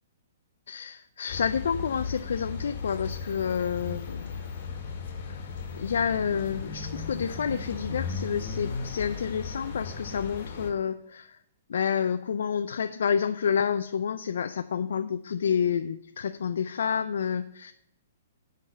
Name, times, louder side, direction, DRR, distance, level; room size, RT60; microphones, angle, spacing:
voice 1, 0.7-4.4 5.3-5.4 5.7-11.4 11.7-17.7, left 7 dB, 75° left, 11 dB, 0.4 m, -29 dB
sound 1, 1.3-10.7, left 5 dB, 55° left, 1.8 m, -36 dB
9.9 x 4.1 x 7.5 m, 0.78 s
hypercardioid pair, 130°, 0 cm